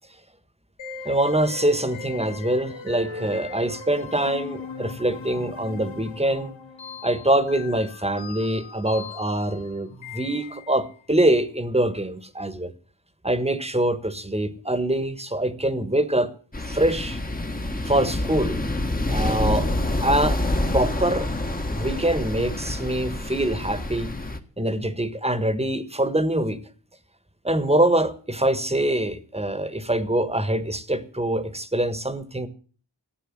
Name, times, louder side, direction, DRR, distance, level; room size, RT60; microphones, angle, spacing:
sound 1, 0.8-11.0, left 5 dB, 90° left, 1.5 m, -39 dB
voice 1, 1.0-6.5 7.0-12.7 13.2-16.3 16.7-17.2 17.9-18.6 19.1-19.7 20.0-20.4 20.7-21.3 21.7-24.1 24.6-26.6 27.4-32.5, right 1 dB, 15° right, 1.5 m, -24 dB
sound 2, 16.5-24.4, left 1 dB, 20° left, 1.4 m, -27 dB
14.5 x 9.0 x 7.4 m
wide cardioid pair, 80°, 44 cm